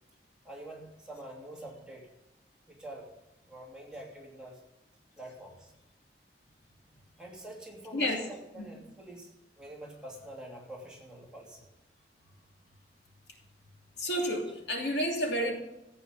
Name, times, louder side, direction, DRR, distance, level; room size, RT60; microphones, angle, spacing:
voice 1, 0.4-2.1 2.7-3.1 3.4-4.6 5.2-5.7 7.2-9.3 9.6-11.7, right 1 dB, 5° right, -3 dB, 2.9 m, -46 dB
voice 2, 14.0-15.5, equal, 80° left, 1 dB, 2.9 m, -30 dB
14.5 x 8.6 x 7.4 m, 0.89 s
head